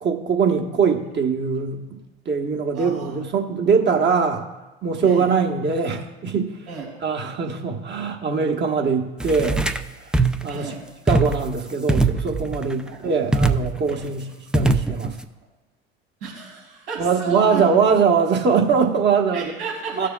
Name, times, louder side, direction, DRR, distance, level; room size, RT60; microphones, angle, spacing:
voice 1, 0.0-2.0 2.2-4.5 4.8-6.6 7.0-9.7 10.0-10.1 10.4-10.7 11.1-14.2 14.5-15.2 17.0-19.5 20.0-20.1, right 5 dB, 35° right, 3 dB, 1.3 m, -22 dB
voice 2, 2.7-3.2 5.0-5.3 6.7-6.9 10.5-10.8 12.9-13.0 16.2-17.6 19.3-20.1, right 4 dB, 75° right, -2 dB, 2.6 m, -33 dB
sound 1, 9.2-9.8 10.1-10.5 11.1-11.6 11.9-12.7 13.3-13.9 14.5-15.2, right 3 dB, 5° right, 0.4 m, -21 dB
15.0 x 6.6 x 2.3 m, 1.1 s
hypercardioid pair, 80°, 31 cm